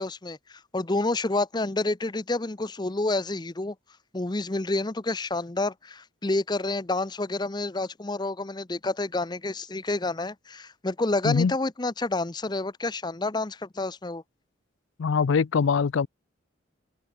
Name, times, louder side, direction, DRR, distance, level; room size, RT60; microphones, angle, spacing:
voice 1, 0.0-3.8 4.1-14.2, left 2 dB, 20° left, 0.7 m, -29 dB
voice 2, 15.0-16.1, left 5 dB, 75° left, 0.4 m, -22 dB
open air
head